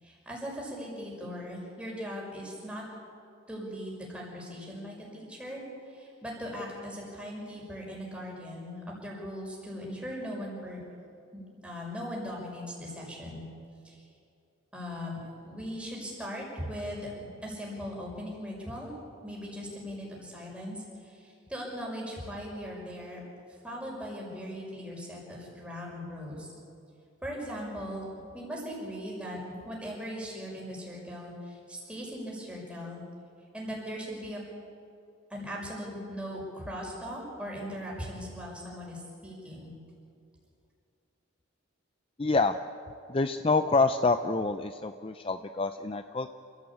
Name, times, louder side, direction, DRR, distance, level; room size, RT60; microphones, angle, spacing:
voice 1, 0.0-2.8 3.5-5.6 5.8-10.8 11.3-13.4 13.8-14.0 14.7-17.1 17.4-18.9 19.2-23.2 23.6-26.5 27.2-28.0 28.3-33.0 33.5-34.4 35.3-39.7, equal, 5° right, -3 dB, 6.0 m, -39 dB
voice 2, 42.2-42.6 43.1-46.3, left 3 dB, 25° left, 9 dB, 0.5 m, -27 dB
28.5 x 15.5 x 8.5 m, 2.5 s
head